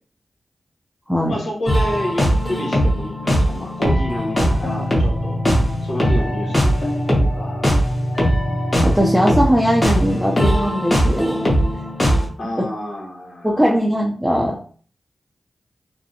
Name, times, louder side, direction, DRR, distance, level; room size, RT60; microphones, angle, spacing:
voice 1, 1.3-5.4 5.8-7.7 12.4-13.6, equal, 80° left, -3 dB, 0.9 m, -29 dB
sound 1, 1.7-12.3, equal, 30° left, 1.1 m, -19 dB
voice 2, 8.8-11.5 12.6-12.7 13.4-14.6, equal, 5° right, -2 dB, 0.5 m, -19 dB
2.5 x 2.1 x 2.7 m, 0.43 s
cardioid pair, 45°, 0 cm